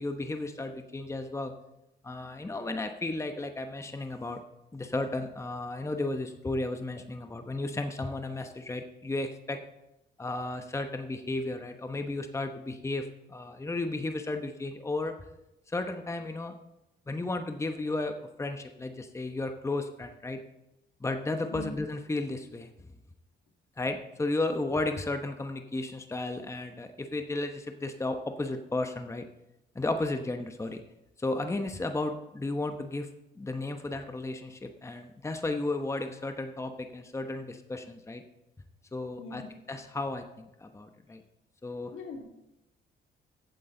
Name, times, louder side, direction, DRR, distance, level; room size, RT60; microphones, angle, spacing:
voice 1, 0.0-1.5 2.0-4.4 4.7-9.6 10.2-15.1 15.7-16.5 17.1-20.4 21.0-22.7 23.8-29.2 29.7-30.8 31.2-33.1 33.4-38.2 38.9-39.4 39.7-41.2 41.6-41.9, left 2 dB, 15° left, 6 dB, 0.9 m, -34 dB
voice 2, 41.9-42.2, left 4 dB, 80° left, 2 dB, 2.2 m, -41 dB
14.5 x 8.7 x 3.9 m, 0.91 s
cardioid pair, 90°, 20 cm